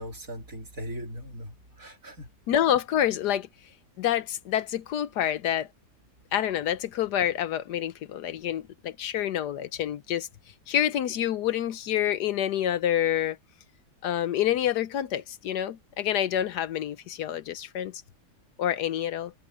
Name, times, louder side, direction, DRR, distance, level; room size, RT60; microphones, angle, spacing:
voice 1, 0.0-2.3, equal, 50° right, 4.6 m, -39 dB
voice 2, 2.5-3.5 4.0-5.7 6.3-10.3 10.7-13.4 14.0-18.0 18.6-19.3, left 11 dB, 70° left, 1.2 m, -27 dB
omnidirectional pair, 1.9 m